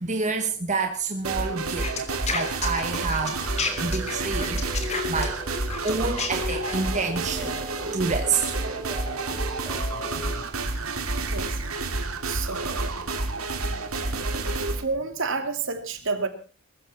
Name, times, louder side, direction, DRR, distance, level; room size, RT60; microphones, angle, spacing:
voice 1, 0.0-2.1 2.3-3.4 3.8-4.6 5.0-5.4 5.8-7.6 7.9-8.5 10.1-10.2, right 4 dB, 35° right, 4 dB, 1.6 m, -28 dB
sound 1, 1.2-14.8, right 3 dB, 80° right, 2.6 m, -29 dB
sound 2, 1.8-6.8, left 4 dB, 30° left, 3.0 m, -31 dB
sound 3, 3.5-10.3, left 2 dB, 15° right, 4.8 m, -38 dB
voice 2, 11.2-11.6 12.2-12.9 14.8-16.3, right 4 dB, 60° right, 7 dB, 2.7 m, -30 dB
22.0 x 14.0 x 4.3 m, 0.37 s
head